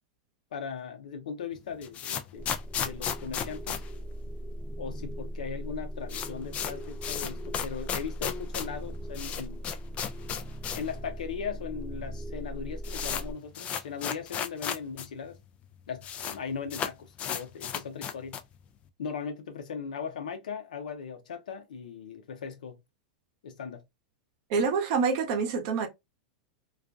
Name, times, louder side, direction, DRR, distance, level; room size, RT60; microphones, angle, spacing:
voice 1, 0.5-3.8 4.8-9.6 10.7-15.4 15.9-18.4 19.0-22.8 23.4-23.8, left 6 dB, 80° left, 0.7 m, -38 dB
sound 1, 1.6-4.8 5.1-5.2 5.4-5.5 5.8-11.0 11.3-11.4 12.1-12.2 12.4-15.1 15.3-15.4 15.6-16.4 16.7-18.6, left 9 dB, 30° left, 0.4 m, -35 dB
sound 2, 2.4-13.4, equal, ahead, 0.8 m, -39 dB
voice 2, 24.5-25.9, right 5 dB, 55° right, 0.8 m, -26 dB
2.4 x 2.3 x 2.4 m
hypercardioid pair, 120°, 4 cm